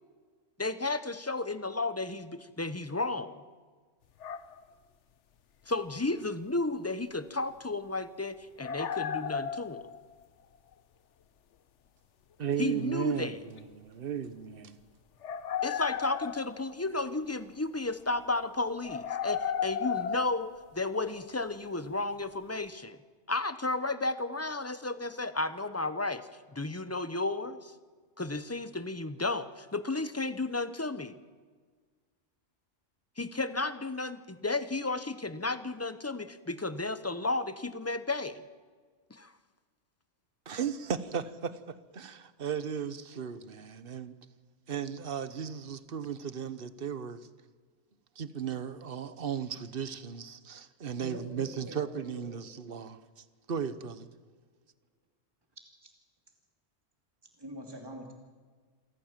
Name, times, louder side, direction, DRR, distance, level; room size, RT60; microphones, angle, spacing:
voice 1, 0.6-3.4 5.7-9.9 12.6-13.4 15.6-23.0 23.3-27.7 28.2-31.2 33.2-38.4 39.1-39.3, left 2 dB, 15° left, 13 dB, 0.7 m, -33 dB
sound 1, 4.2-4.6 6.1-6.2 8.6-10.2 13.6-13.7 15.2-17.0 18.8-21.2, left 7 dB, 75° left, 1.2 m, -34 dB
voice 2, 12.4-14.8 40.5-44.1 44.7-47.3 48.2-53.0 53.5-54.1, right 7 dB, 50° right, 14 dB, 1.2 m, -36 dB
voice 3, 51.0-52.4 55.8-55.9 57.4-58.1, right 1 dB, 20° right, 2 dB, 2.8 m, -44 dB
27.5 x 14.5 x 7.4 m, 1.5 s
omnidirectional pair, 1.2 m